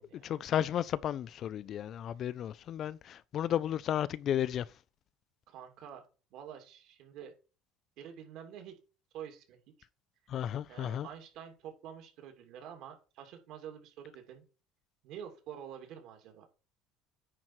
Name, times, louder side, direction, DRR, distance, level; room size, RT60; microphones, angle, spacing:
voice 1, 0.0-4.7 10.3-11.1, left 10 dB, 40° left, 0.4 m, -33 dB
voice 2, 5.5-6.0 6.3-7.3 8.0-8.8 9.1-9.6 10.7-14.5 15.0-16.4, right 9 dB, 60° right, 2.7 m, -47 dB
9.7 x 4.5 x 4.6 m
cardioid pair, 150°, 0 cm